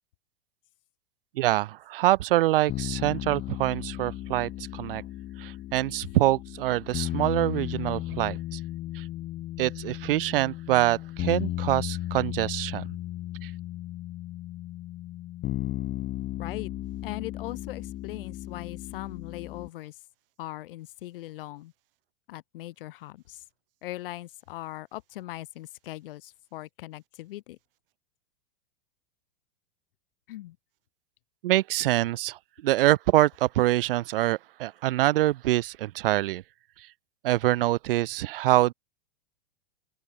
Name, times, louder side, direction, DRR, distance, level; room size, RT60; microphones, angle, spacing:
voice 1, 1.4-5.0 5.4-8.6 8.9-9.0 9.6-12.8 13.4-13.5 31.4-36.4 37.2-38.7, right 16 dB, 65° right, 4.0 m, -25 dB
sound 1, 2.7-19.7, left 15 dB, 30° left, 4.2 m, -35 dB
voice 2, 16.4-16.7 17.0-19.9 20.4-21.7 22.3-23.4 23.8-27.6 30.3-30.6, left 16 dB, 65° left, 5.1 m, -40 dB
open air
supercardioid pair, 155°, 30 cm